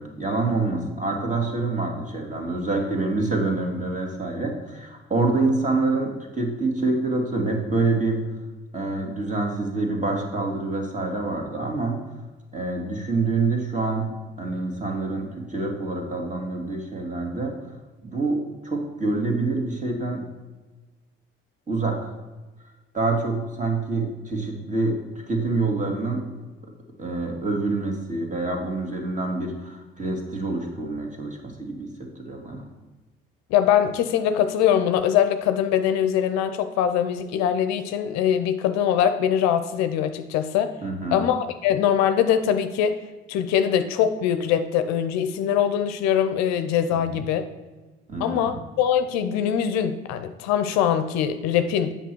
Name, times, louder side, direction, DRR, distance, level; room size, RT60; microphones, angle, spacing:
voice 1, 0.0-8.2 8.7-12.0 12.5-14.1 14.4-17.5 18.0-20.2 21.7-22.0 22.9-25.0 25.3-26.3 27.0-32.7 40.8-41.2 46.9-47.2 48.1-48.5, right 3 dB, 25° right, 2 dB, 2.0 m, -26 dB
voice 2, 33.5-40.7 41.1-43.0 43.3-47.4 48.2-52.0, left 9 dB, 65° left, 10 dB, 0.6 m, -22 dB
8.1 x 5.7 x 4.5 m, 1.2 s
hypercardioid pair, 50°, 29 cm